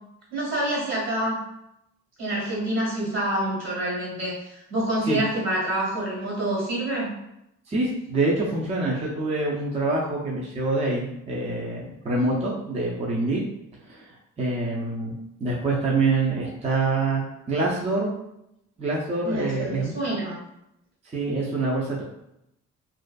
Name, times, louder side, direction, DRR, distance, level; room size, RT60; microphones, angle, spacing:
voice 1, 0.3-1.4 2.2-7.1 19.2-20.4, right 1 dB, 60° right, -4 dB, 1.5 m, -27 dB
voice 2, 7.7-13.4 13.9-15.1 15.4-17.2 17.5-18.1 18.8-20.0 21.1-22.0, right 2 dB, 20° right, -5 dB, 0.5 m, -25 dB
2.5 x 2.4 x 2.2 m, 0.81 s
cardioid pair, 90°, 30 cm